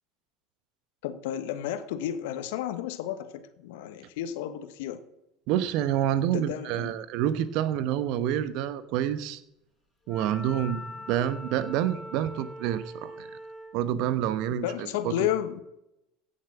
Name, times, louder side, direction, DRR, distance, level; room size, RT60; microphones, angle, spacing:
voice 1, 1.0-5.0 6.2-6.9 14.5-15.6, left 11 dB, 70° left, 11 dB, 1.3 m, -32 dB
voice 2, 5.5-9.4 10.1-13.3 13.7-15.1, right 11 dB, 60° right, 14 dB, 1.0 m, -28 dB
Wind instrument woodwind instrument, 10.1-13.8, left 1 dB, 20° left, 3.8 m, -42 dB
16.0 x 6.9 x 6.0 m, 0.87 s
hypercardioid pair, 75°, 0 cm